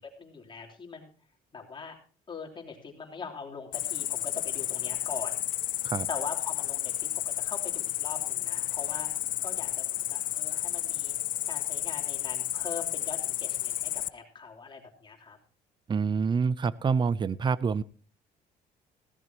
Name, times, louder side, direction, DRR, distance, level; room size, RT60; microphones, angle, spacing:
voice 1, 0.2-1.1 1.5-2.0 2.3-5.4 6.1-9.1 9.4-11.1 11.5-15.4, left 5 dB, 30° left, 1 dB, 3.3 m, -41 dB
Cricket, 3.7-14.1, left 13 dB, 55° left, 0.5 m, -32 dB
voice 2, 15.9-17.8, right 5 dB, 25° right, 20 dB, 0.6 m, -27 dB
16.5 x 13.5 x 2.9 m, 0.37 s
cardioid pair, 110°, 17 cm